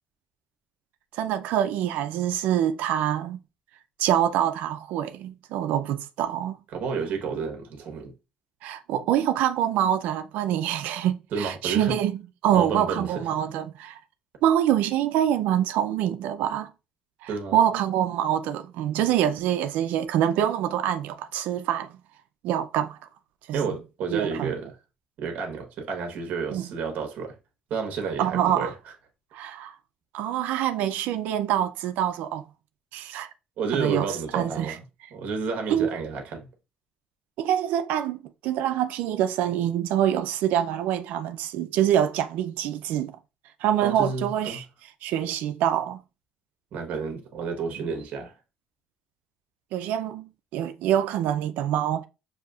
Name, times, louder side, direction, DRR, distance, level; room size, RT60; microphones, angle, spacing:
voice 1, 1.1-3.4 4.0-6.6 8.6-14.0 14.4-16.7 17.2-22.0 22.4-23.0 23.5-23.8 24.1-24.5 26.5-26.7 28.2-28.7 29.3-29.7 30.1-32.4 32.9-33.3 33.7-34.1 34.3-34.8 35.7-35.9 37.4-43.2 43.6-44.6 45.0-46.0 49.7-52.1, right 10 dB, 85° right, 0.4 m, -25 dB
voice 2, 6.7-8.1 11.3-11.9 12.5-13.3 17.3-17.6 23.5-24.7 25.2-27.4 27.7-28.7 33.6-34.8 35.1-36.5 43.8-44.6 46.7-48.3, right 5 dB, 65° right, 1.0 m, -30 dB
6.4 x 2.7 x 2.3 m
cardioid pair, 115°, 3 cm